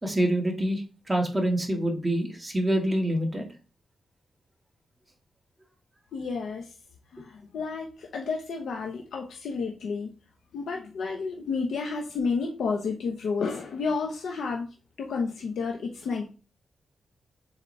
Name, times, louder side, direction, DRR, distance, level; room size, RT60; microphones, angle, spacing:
voice 1, 0.0-3.5, right 1 dB, 15° right, 1 dB, 1.8 m, -26 dB
voice 2, 6.1-6.7 7.1-10.1 10.5-14.7 15.0-16.2, left 4 dB, 90° left, 1 dB, 1.0 m, -31 dB
7.4 x 4.1 x 3.3 m, 0.34 s
wide cardioid pair, 110°, 0 cm